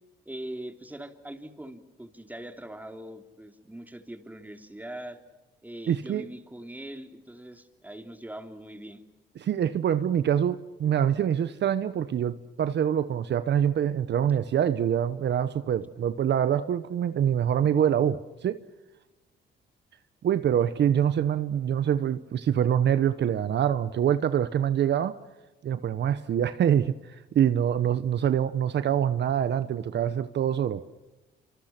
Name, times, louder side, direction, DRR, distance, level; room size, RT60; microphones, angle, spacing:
voice 1, 0.2-5.2 5.6-9.0, right 1 dB, 10° right, 7 dB, 3.0 m, -41 dB
voice 2, 5.9-6.2 9.4-18.6 20.2-25.1 25.6-30.8, right 9 dB, 60° right, 13 dB, 1.1 m, -25 dB
28.5 x 26.0 x 6.0 m, 1.1 s
cardioid pair, 90°, 20 cm